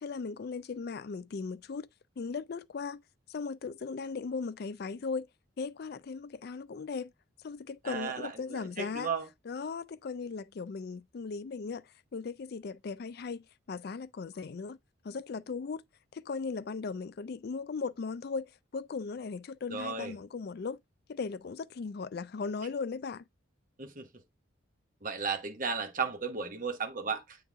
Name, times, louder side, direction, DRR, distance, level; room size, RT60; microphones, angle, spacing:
voice 1, 0.0-1.9 2.2-3.0 3.3-5.3 5.6-7.1 7.4-9.1 9.5-11.8 12.1-14.8 15.0-15.8 16.1-20.8 21.1-23.2, left 4 dB, 50° left, 0.4 m, -37 dB
voice 2, 7.8-9.3 19.7-20.2 23.8-24.1 25.0-27.4, right 5 dB, 40° right, 1.1 m, -35 dB
7.8 x 3.8 x 3.6 m
head